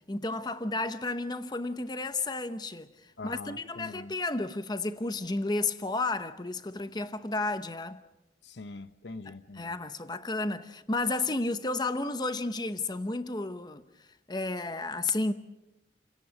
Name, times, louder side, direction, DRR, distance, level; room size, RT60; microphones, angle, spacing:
voice 1, 0.1-2.9 3.2-8.0 9.6-13.8 14.3-15.3, left 2 dB, 25° left, 0.8 m, -32 dB
voice 2, 3.2-4.1 8.4-9.8, left 3 dB, 80° left, 0.8 m, -43 dB
29.0 x 17.5 x 6.3 m
head